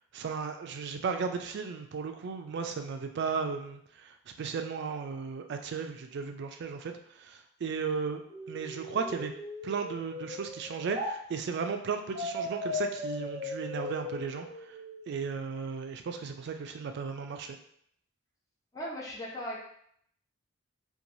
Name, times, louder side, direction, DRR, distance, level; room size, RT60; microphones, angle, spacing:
voice 1, 0.1-8.2 8.5-9.3 9.6-14.8 15.1-17.6, right 5 dB, 55° right, 6 dB, 0.3 m, -35 dB
sound 1, 8.3-11.1 12.1-15.1, left 2 dB, 20° right, 1.0 m, -38 dB
voice 2, 18.7-19.6, equal, 15° left, -5 dB, 0.6 m, -37 dB
3.0 x 2.2 x 2.6 m, 0.67 s
head